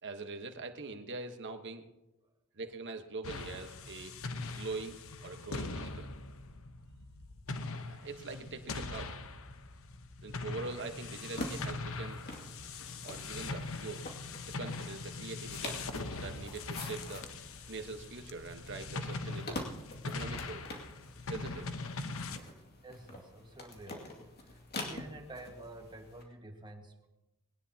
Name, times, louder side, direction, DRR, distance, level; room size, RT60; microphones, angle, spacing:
voice 1, 0.0-1.8 2.6-4.2 4.6-6.1 7.8-9.1 10.2-12.2 13.0-14.1 14.5-17.3 17.7-19.6 20.0-20.6 21.3-21.7, right 3 dB, 55° right, 6 dB, 1.2 m, -43 dB
sound 1, 3.2-22.4, left 3 dB, 65° left, 1.0 m, -41 dB
sound 2, 11.2-26.2, left 2 dB, 45° left, 2.3 m, -46 dB
voice 2, 22.8-24.2 24.8-27.1, right 2 dB, 20° right, 3 dB, 1.7 m, -49 dB
20.5 x 18.0 x 2.9 m, 1.0 s
head